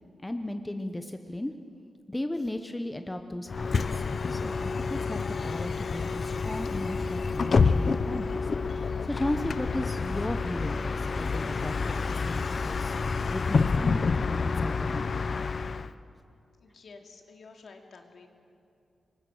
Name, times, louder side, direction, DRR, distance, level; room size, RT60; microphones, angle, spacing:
voice 1, 0.2-1.5 2.1-4.0 4.3-15.1, left 1 dB, 10° left, 7 dB, 0.8 m, -36 dB
Bus, 3.5-15.9, left 4 dB, 45° left, 0.6 m, -28 dB
sound 1, 5.4-11.4, right 1 dB, 25° right, 5.1 m, -48 dB
voice 2, 16.6-18.3, left 4 dB, 60° left, 3 dB, 2.5 m, -50 dB
26.0 x 23.0 x 6.4 m, 2.5 s
wide cardioid pair, 155°, 0 cm